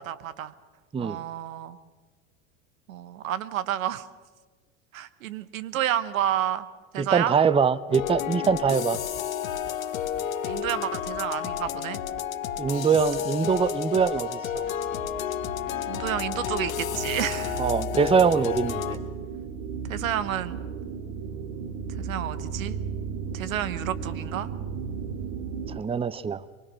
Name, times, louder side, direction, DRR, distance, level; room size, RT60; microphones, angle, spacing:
voice 1, 0.1-0.5 1.0-1.8 2.9-4.0 4.9-6.6 6.9-7.3 10.4-12.0 15.9-17.7 19.9-20.6 22.0-22.8 23.3-24.5, right 11 dB, 85° right, 14 dB, 1.2 m, -30 dB
voice 2, 7.0-9.0 12.6-14.7 17.6-19.0 25.8-26.4, right 6 dB, 15° right, 18 dB, 0.6 m, -23 dB
sound 1, 7.9-19.0, left 9 dB, 85° left, 1.5 m, -31 dB
sound 2, 14.6-25.8, right 6 dB, 65° right, 2.3 m, -35 dB
24.0 x 23.5 x 6.3 m, 1.4 s
hypercardioid pair, 80°, 39 cm